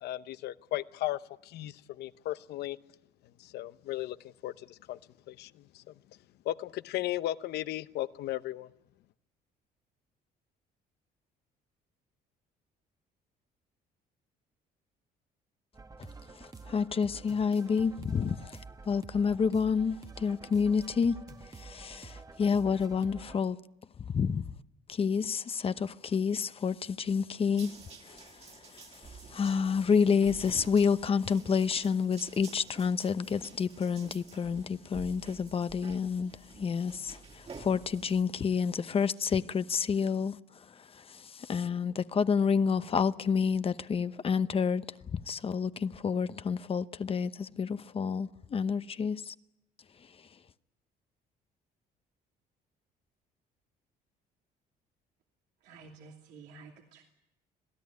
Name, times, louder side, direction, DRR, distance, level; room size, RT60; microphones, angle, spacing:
voice 1, 0.0-2.8 3.4-5.0 5.3-5.9 6.4-8.7, left 14 dB, 75° left, 0.8 m, -36 dB
sound 1, 15.7-23.4, right 4 dB, 20° right, 1.2 m, -49 dB
voice 2, 16.4-21.2 21.5-23.6 24.1-24.5 24.9-27.8 28.0-44.8 45.1-49.3, left 6 dB, 35° left, 0.9 m, -29 dB
sound 2, 27.6-38.2, right 4 dB, 35° right, 2.4 m, -51 dB
voice 3, 55.6-57.0, right 4 dB, 90° right, 2.8 m, -51 dB
26.0 x 17.0 x 9.5 m
cardioid pair, 110°, 17 cm